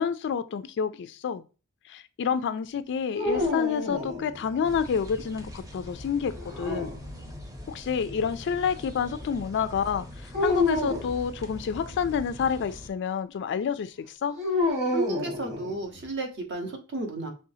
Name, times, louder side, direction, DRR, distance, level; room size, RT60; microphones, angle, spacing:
voice 1, 0.0-1.4 1.9-6.9 7.7-14.4, left 7 dB, 55° left, 0.3 m, -29 dB
sound 1, 3.1-4.7 6.4-7.5 10.3-11.1 14.4-16.0, left 2 dB, 30° right, 1.6 m, -29 dB
sound 2, 4.6-12.9, left 1 dB, 15° right, 0.7 m, -42 dB
voice 2, 14.9-17.3, right 2 dB, 55° right, 1.1 m, -32 dB
5.4 x 3.3 x 2.7 m
head